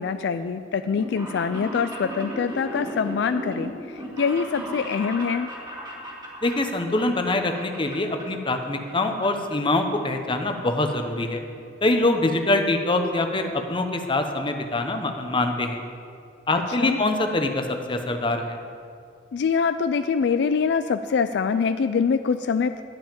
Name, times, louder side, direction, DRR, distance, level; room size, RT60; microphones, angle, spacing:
voice 1, 0.0-5.5 16.8-17.0 19.3-22.8, left 5 dB, 70° left, 10 dB, 0.4 m, -24 dB
sound 1, 0.8-8.6 8.8-9.5 9.9-10.9 11.2-11.3 12.2-12.3 12.5-12.6 12.9-13.0 13.3-13.5 13.9-14.0 14.2-14.3, equal, 25° right, 1.8 m, -37 dB
voice 2, 6.4-11.4 11.8-15.8 16.5-18.6, left 2 dB, 30° left, 5 dB, 0.9 m, -24 dB
11.5 x 5.6 x 8.9 m, 2.3 s
head